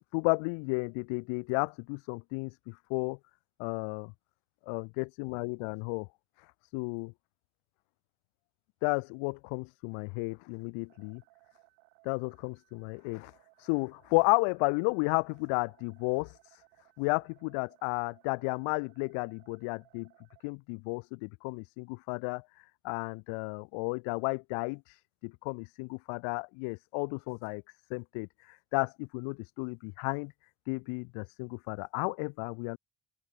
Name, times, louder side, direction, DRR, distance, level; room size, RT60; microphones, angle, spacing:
voice 1, 0.0-3.2 3.6-4.1 4.7-6.1 6.7-7.1 8.8-11.2 12.0-13.3 13.6-16.3 17.0-20.1 20.4-22.4 22.8-24.8 25.2-27.6 27.9-28.3 28.7-30.3 30.7-32.8, left 34 dB, 85° left, 0.5 m, -33 dB
sound 1, 10.9-20.5, right 40 dB or more, 90° right, 5.9 m, -64 dB
open air
supercardioid pair, 65°, 47 cm